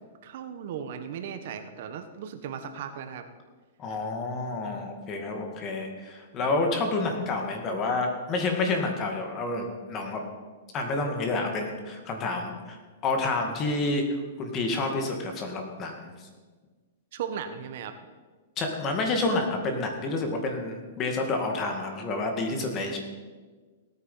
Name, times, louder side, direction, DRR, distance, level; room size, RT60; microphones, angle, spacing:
voice 1, 0.2-3.2 17.1-18.0, right 8 dB, 55° right, 8 dB, 1.3 m, -36 dB
voice 2, 3.8-10.2 10.7-16.1 18.6-23.0, left 2 dB, 25° left, 3 dB, 2.2 m, -29 dB
17.0 x 9.4 x 5.7 m, 1.4 s
hypercardioid pair, 150°, 0 cm